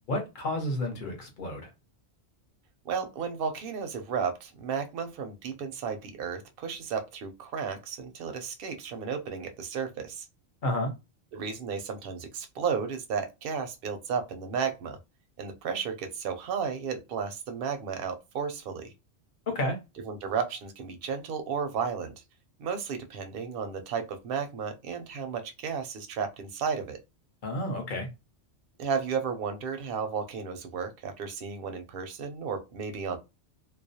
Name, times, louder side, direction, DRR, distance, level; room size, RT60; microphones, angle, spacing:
voice 1, 0.1-1.7 10.6-10.9 19.5-19.8 27.4-28.1, left 1 dB, 50° left, 0.9 m, -30 dB
voice 2, 2.8-10.3 11.3-15.0 15.4-18.9 20.1-22.1 22.6-27.0 28.8-33.2, right 6 dB, 60° right, 0.7 m, -33 dB
2.3 x 2.1 x 2.7 m
omnidirectional pair, 1.2 m